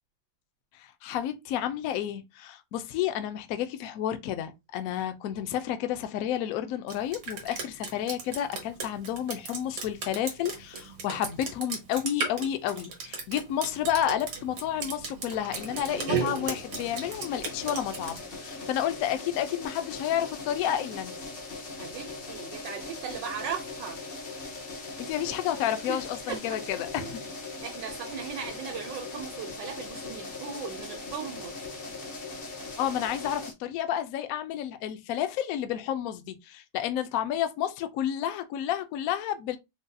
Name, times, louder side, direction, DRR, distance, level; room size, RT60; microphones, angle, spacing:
voice 1, 0.7-21.1 25.0-27.3 32.8-39.6, left 10 dB, 75° left, 0.8 m, -31 dB
Drip, 6.9-18.2, right 5 dB, 60° right, 1.4 m, -35 dB
sound 1, 15.6-33.5, left 3 dB, 45° left, 0.8 m, -40 dB
voice 2, 21.8-24.0 25.9-26.0 26.3-26.6 27.0-27.1 27.6-31.5, right 7 dB, 80° right, 1.3 m, -37 dB
3.9 x 2.6 x 2.2 m
omnidirectional pair, 1.9 m